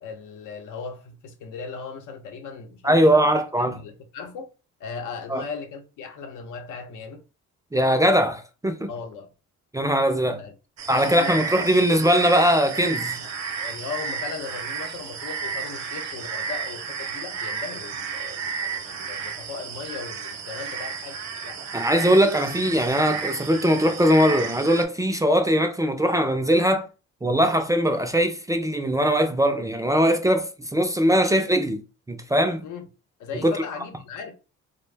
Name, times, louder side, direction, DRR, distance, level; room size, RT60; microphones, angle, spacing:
voice 1, 0.0-3.3 3.7-4.5 4.8-7.2 8.9-9.3 10.4-10.5 10.9-11.4 13.2-13.3 13.6-22.2 32.6-32.9 33.2-34.3, left 5 dB, 80° left, 0.7 m, -38 dB
voice 2, 2.8-3.8 5.3-5.4 7.7-8.9 9.7-10.4 10.9-13.2 21.7-26.9 27.2-31.8 32.1-32.6 33.4-33.6, equal, 10° right, 0.3 m, -21 dB
sound 1, 10.8-24.8, right 6 dB, 60° right, 0.7 m, -32 dB
2.5 x 2.1 x 3.2 m
cardioid pair, 90°, 30 cm